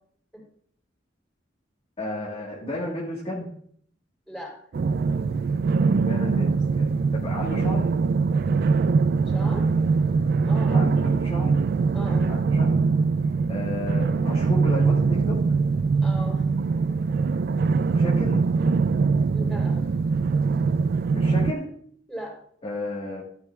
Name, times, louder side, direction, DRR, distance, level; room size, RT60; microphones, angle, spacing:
voice 1, 2.0-3.5 5.9-7.9 10.7-11.5 12.3-12.7 13.5-15.4 17.9-18.4 21.1-21.7 22.6-23.2, left 1 dB, 35° left, -5 dB, 1.6 m, -32 dB
sound 1, 4.7-21.5, right 4 dB, 55° right, 0.3 m, -22 dB
voice 2, 9.3-9.7 10.5-10.9 11.9-12.3 16.0-16.4 16.9-17.4 19.3-19.8 22.1-22.4, equal, ahead, -4 dB, 3.5 m, -38 dB
13.0 x 8.5 x 2.4 m, 0.62 s
head